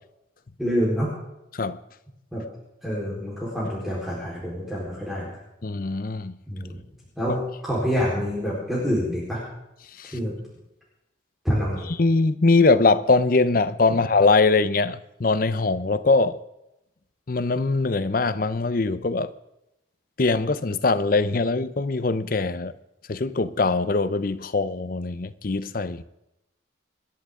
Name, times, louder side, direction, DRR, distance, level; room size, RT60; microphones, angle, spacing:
voice 1, 0.6-1.1 2.3-2.4 2.8-5.3 6.5-6.8 7.2-9.4 10.1-10.3 11.4-11.9, equal, ahead, 4.1 m, -26 dB
voice 2, 5.6-6.4 10.0-10.2 11.9-16.4 17.3-19.3 20.2-22.7 23.1-26.0, left 3 dB, 45° left, 0.6 m, -22 dB
27.0 x 10.5 x 3.7 m
head